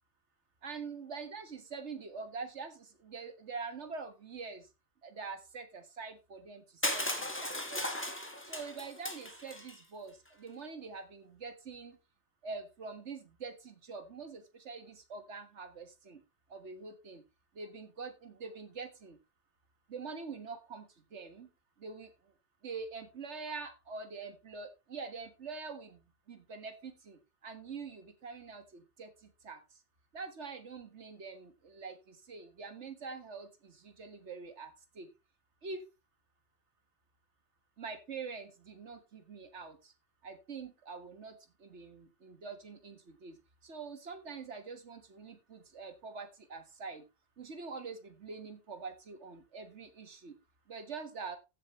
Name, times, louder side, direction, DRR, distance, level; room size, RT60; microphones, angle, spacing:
voice 1, 0.6-4.7 5.0-8.0 8.4-12.0 12.4-16.2 16.5-17.2 17.6-19.2 19.9-21.5 21.8-22.1 22.6-29.6 30.1-35.1 35.6-35.8 37.8-39.9 40.2-43.4 43.6-47.0 47.4-50.4 50.7-51.4, right 4 dB, 85° right, 8 dB, 1.8 m, -45 dB
Crushing, 6.8-9.8, left 1 dB, 10° left, 1.6 m, -36 dB
14.5 x 7.4 x 3.1 m, 0.27 s
omnidirectional pair, 1.1 m